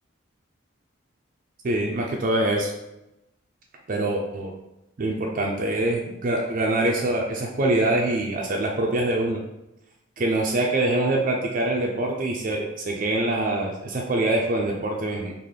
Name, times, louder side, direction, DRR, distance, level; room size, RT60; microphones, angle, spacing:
voice 1, 1.6-2.7 3.9-4.5 5.0-9.4 10.2-15.3, right 2 dB, 40° right, 0 dB, 0.4 m, -24 dB
3.7 x 2.4 x 3.2 m, 0.92 s
head